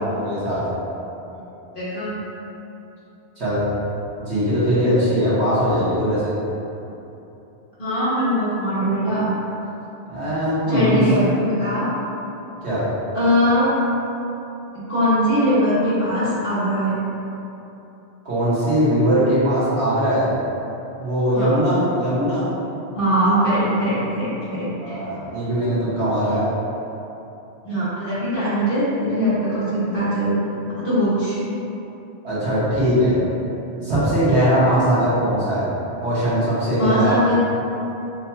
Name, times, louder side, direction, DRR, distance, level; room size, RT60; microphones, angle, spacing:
voice 1, 0.1-0.6 3.4-3.6 4.2-6.4 10.1-11.0 12.6-12.8 18.3-20.3 21.0-22.5 24.8-26.5 32.2-33.2 33.8-35.7 36.0-37.2, equal, 85° right, -12 dB, 1.7 m, -20 dB
voice 2, 1.7-2.1 7.8-9.3 10.7-11.9 13.1-13.7 14.9-16.9 21.3-21.6 22.9-25.0 27.6-30.3 30.8-31.4 36.8-37.4, equal, 55° left, -11 dB, 1.5 m, -21 dB
6.1 x 2.7 x 2.3 m, 3.0 s
omnidirectional pair, 1.1 m